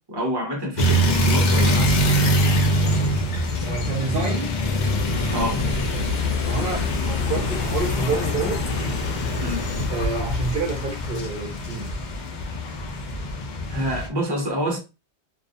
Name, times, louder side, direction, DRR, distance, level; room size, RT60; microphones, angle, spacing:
voice 1, 0.1-1.9 5.3-5.6 9.4-9.6 13.7-14.8, equal, 25° right, 0.7 m, -27 dB
sound 1, 0.8-14.1, equal, 55° left, 0.5 m, -24 dB
voice 2, 3.6-4.5 6.4-8.6 9.9-11.9, right 3 dB, 60° right, 0.7 m, -28 dB
sound 2, 4.6-9.9, left 2 dB, 75° left, 0.9 m, -30 dB
2.3 x 2.0 x 2.6 m
omnidirectional pair, 1.1 m